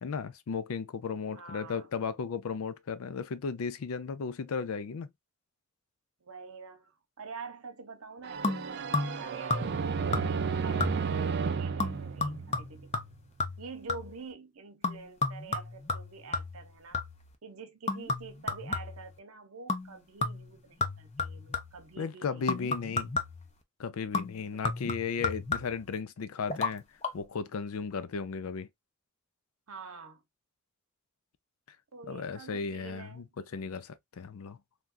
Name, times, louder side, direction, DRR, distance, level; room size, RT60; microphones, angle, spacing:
voice 1, 0.0-5.1 22.0-23.1 23.8-26.8 27.1-28.7 31.7-31.8 32.1-33.3 33.5-34.6, left 5 dB, 85° left, 0.4 m, -35 dB
voice 2, 1.3-1.9 6.2-13.0 13.6-17.0 17.4-22.7 24.5-24.7 29.7-30.2 31.9-33.3, right 4 dB, 85° right, 0.8 m, -47 dB
sound 1, 8.2-13.0, right 5 dB, 50° right, 0.4 m, -32 dB
sound 2, 8.4-9.2 9.5-9.9 10.1-10.5 10.8-11.2 11.8-14.2 14.8-17.3 17.9-19.1 19.7-19.9 20.2-21.9 22.5-23.5 24.1-25.9 26.5-26.7 27.0-27.1, left 3 dB, 30° left, 0.5 m, -33 dB
3.4 x 2.4 x 2.4 m
head